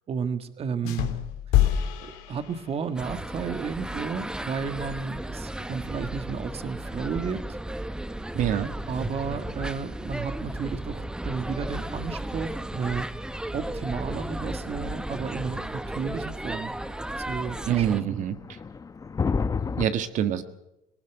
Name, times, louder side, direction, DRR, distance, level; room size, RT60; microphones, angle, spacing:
voice 1, 0.1-1.1 2.0-7.5 8.9-13.1 13.5-16.7 17.2-18.2, right 6 dB, 40° right, 10 dB, 1.7 m, -32 dB
sound 1, 0.8-3.0, left 12 dB, 85° left, 2.5 m, -26 dB
sound 2, 2.9-18.0, right 1 dB, 5° right, 0.9 m, -34 dB
voice 2, 8.3-8.7 17.7-18.4 19.8-20.4, right 10 dB, 55° right, 10 dB, 1.6 m, -25 dB
sound 3, 16.8-19.9, left 5 dB, 25° left, 0.9 m, -31 dB
19.0 x 18.5 x 8.2 m, 0.88 s
cardioid pair, 105°, 15 cm